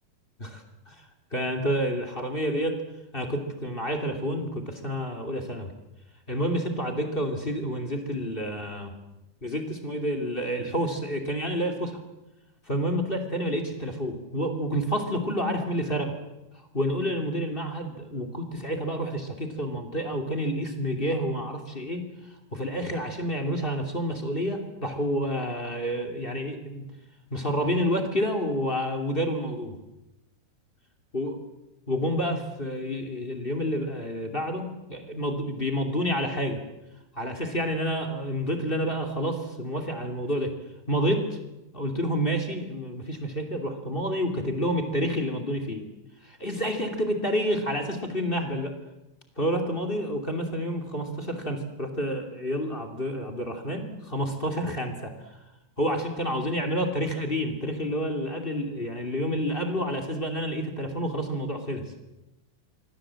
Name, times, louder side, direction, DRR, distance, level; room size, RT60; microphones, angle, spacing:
voice 1, 0.4-1.0 1.3-2.8 3.1-5.7 6.3-8.9 9.4-12.0 12.7-16.1 16.7-22.1 22.5-26.9 27.3-29.8 31.1-31.4 31.9-36.6 37.1-40.5 40.9-41.4 41.7-45.8 46.2-48.8 49.4-55.1 55.8-61.9, equal, 15° left, 6 dB, 2.3 m, -29 dB
26.5 x 24.5 x 7.7 m, 0.96 s
omnidirectional pair, 4.3 m